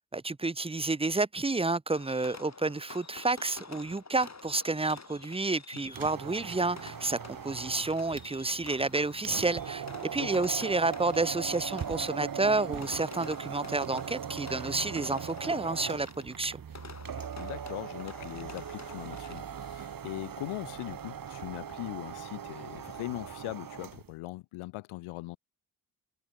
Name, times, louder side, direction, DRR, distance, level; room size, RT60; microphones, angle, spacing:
voice 1, 0.1-16.6, right 3 dB, 10° right, 0.8 m, -30 dB
Fireworks, 1.9-19.7, left 4 dB, 35° left, 5.8 m, -49 dB
sound 1, 5.9-24.1, right 8 dB, 45° right, 1.4 m, -40 dB
voice 2, 17.4-25.4, left 20 dB, 80° left, 0.9 m, -40 dB
hypercardioid pair, 40°, 49 cm